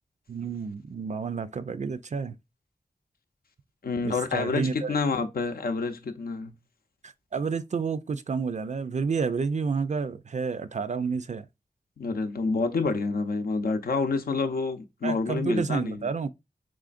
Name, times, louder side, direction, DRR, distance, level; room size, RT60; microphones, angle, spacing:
voice 1, 0.3-2.4 4.0-4.9 7.0-11.5 15.0-16.3, right 5 dB, 50° right, 0.4 m, -30 dB
voice 2, 3.8-6.6 12.0-16.0, left 4 dB, 75° left, 0.6 m, -28 dB
3.7 x 3.2 x 2.5 m
cardioid pair, 55°, 16 cm